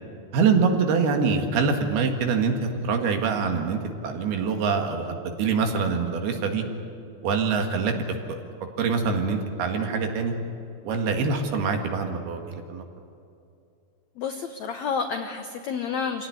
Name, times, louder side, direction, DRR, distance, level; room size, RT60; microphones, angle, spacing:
voice 1, 0.3-6.6 7.2-7.9 8.8-10.3 10.8-12.8, right 5 dB, 75° right, 4 dB, 3.8 m, -24 dB
voice 2, 14.2-16.3, left 6 dB, 85° left, 6 dB, 1.6 m, -30 dB
26.0 x 17.0 x 9.8 m, 2.6 s
omnidirectional pair, 4.6 m